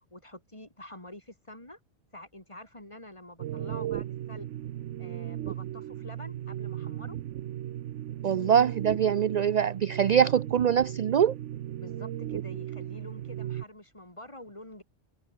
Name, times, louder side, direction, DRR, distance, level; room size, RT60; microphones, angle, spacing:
voice 1, 0.1-1.8 2.1-4.5 5.0-7.2 11.8-14.8, left 1 dB, 25° left, 4.2 m, -47 dB
sound 1, 3.4-13.6, right 12 dB, 85° right, 1.0 m, -36 dB
voice 2, 8.2-11.4, right 8 dB, 55° right, 0.5 m, -23 dB
omnidirectional pair, 1.2 m